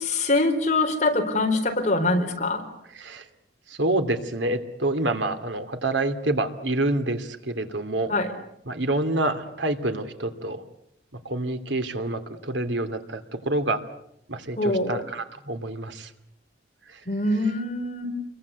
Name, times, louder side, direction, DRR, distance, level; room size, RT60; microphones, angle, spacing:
voice 1, 0.0-2.6 8.1-8.3 14.6-15.0 17.1-18.1, left 2 dB, 40° left, 4 dB, 4.5 m, -24 dB
voice 2, 3.8-8.1 8.7-10.6 11.2-13.8 14.3-16.1, right 2 dB, 80° right, 8 dB, 2.7 m, -27 dB
29.0 x 22.5 x 8.4 m, 0.78 s
head